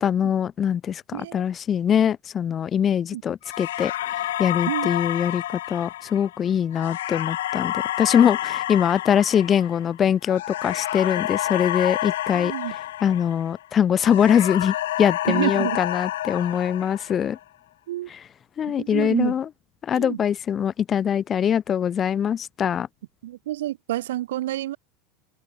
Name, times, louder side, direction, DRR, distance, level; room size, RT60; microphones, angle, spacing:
voice 1, 0.0-5.4 5.7-12.5 13.0-17.4 18.1-18.2 18.6-19.5 19.8-22.9, left 8 dB, 35° left, 2.1 m, -23 dB
voice 2, 1.1-1.4 3.1-3.2 4.7-4.9 12.3-12.7 15.3-15.8 17.9-18.1 18.8-19.3 19.9-20.2 23.2-24.8, right 14 dB, 80° right, 5.0 m, -28 dB
sound 1, 3.5-13.7 14.0-17.4, left 13 dB, 80° left, 5.9 m, -29 dB
hypercardioid pair, 100°, 0 cm